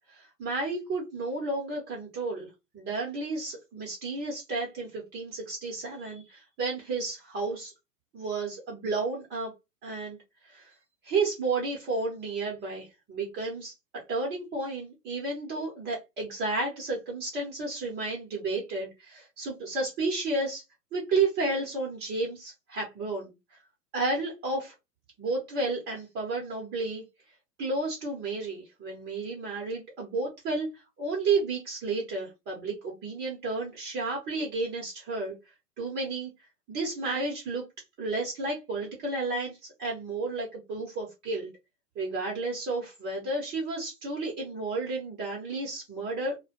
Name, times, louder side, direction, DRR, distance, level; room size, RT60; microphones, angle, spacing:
voice 1, 0.1-2.5 2.7-7.7 8.1-9.5 9.8-10.2 10.5-10.7 11.0-20.6 20.9-23.3 23.9-24.7 25.2-27.0 27.6-30.7 31.0-35.3 35.8-36.3 36.7-37.6 38.0-41.5 42.0-46.4, right 3 dB, 20° right, -1 dB, 0.7 m, -32 dB
2.1 x 2.1 x 2.9 m, 0.23 s
hypercardioid pair, 120°, 47 cm